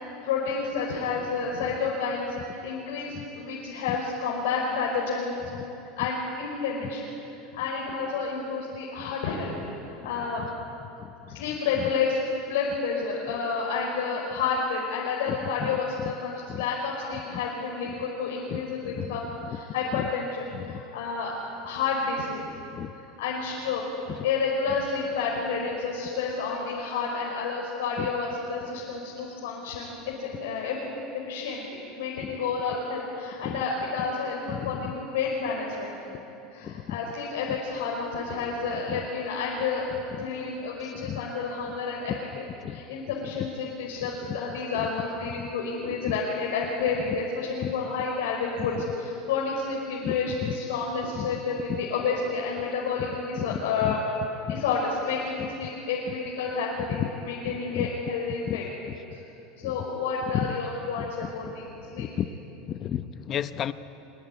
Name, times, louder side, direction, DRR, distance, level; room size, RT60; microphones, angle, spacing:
voice 1, 0.2-5.4 6.0-7.1 7.5-9.5 10.0-10.5 11.3-12.2 12.5-19.2 19.5-21.3 21.6-22.5 23.2-35.9 36.5-39.9 40.2-54.0 54.5-58.6 59.1-59.2 59.6-61.7 61.9-62.1, left 5 dB, 90° left, -3 dB, 5.4 m, -30 dB
voice 2, 18.9-19.2 19.9-20.1 20.5-20.8 22.8-22.9 28.0-28.1 32.2-32.3 33.4-33.6 34.5-34.9 36.6-37.0 38.9-39.0 41.0-41.2 42.6-42.8 45.4-45.5 47.6-47.7 48.6-48.7 50.0-50.5 51.2-51.3 51.7-51.8 53.5-54.0 54.5-54.6 57.0-57.1 57.7-57.9 58.5-58.6 58.9-59.0 59.6-59.7 60.3-60.5 61.0-61.1 61.4-61.5 62.0-62.3 62.7-63.7, left 10 dB, 35° left, 12 dB, 0.9 m, -32 dB
25.5 x 23.0 x 9.6 m, 2.9 s
supercardioid pair, 145°, 0 cm